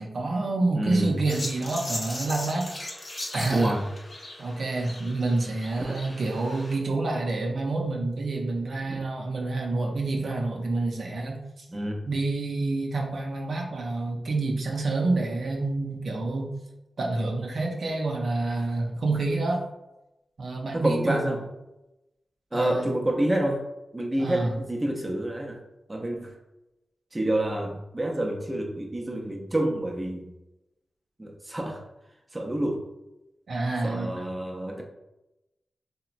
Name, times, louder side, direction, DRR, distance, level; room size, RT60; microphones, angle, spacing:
voice 1, 0.0-2.7 3.3-3.7 4.4-11.7 12.1-16.5 17.0-19.6 20.4-21.4 22.5-22.9 24.2-24.6 33.5-34.3, right 2 dB, 75° right, -1 dB, 0.5 m, -28 dB
voice 2, 0.7-1.2 3.5-3.9 5.9-6.0 8.9-9.0 11.7-12.0 20.7-21.4 22.5-23.6 23.9-25.6 25.9-26.3 27.1-30.3 31.2-31.8 32.3-32.8 33.8-34.8, right 1 dB, 25° right, 1 dB, 0.5 m, -28 dB
sound 1, 1.2-6.8, left 1 dB, 45° left, 0.7 m, -38 dB
2.9 x 2.1 x 2.4 m, 0.92 s
cardioid pair, 50°, 0 cm